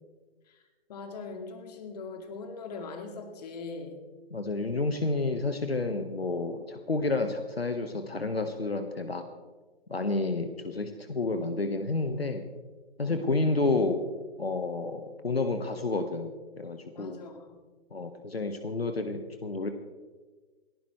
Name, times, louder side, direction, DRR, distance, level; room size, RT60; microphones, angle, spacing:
voice 1, 0.9-4.0 13.1-13.3 17.0-17.6, left 4 dB, 40° left, 5 dB, 2.3 m, -41 dB
voice 2, 4.3-9.3 9.9-12.4 13.0-14.0 14.4-17.2 17.9-19.7, left 3 dB, 75° left, 7 dB, 1.5 m, -30 dB
29.5 x 11.0 x 3.3 m, 1.3 s
figure-of-eight pair, 125°, 31 cm